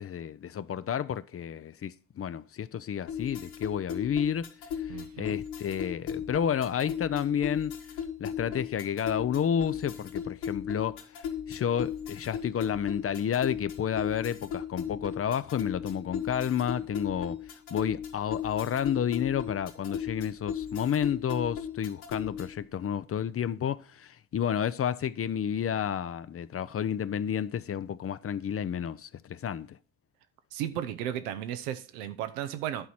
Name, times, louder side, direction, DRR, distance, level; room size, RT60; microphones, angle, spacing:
voice 1, 0.0-4.5 4.8-7.7 8.2-29.8, left 8 dB, 30° left, 0.6 m, -31 dB
sound 1, 3.1-22.6, left 8 dB, 85° left, 1.4 m, -36 dB
voice 2, 4.9-5.4 30.5-32.9, right 11 dB, 85° right, 0.8 m, -35 dB
11.0 x 4.1 x 5.9 m
hypercardioid pair, 60°, 44 cm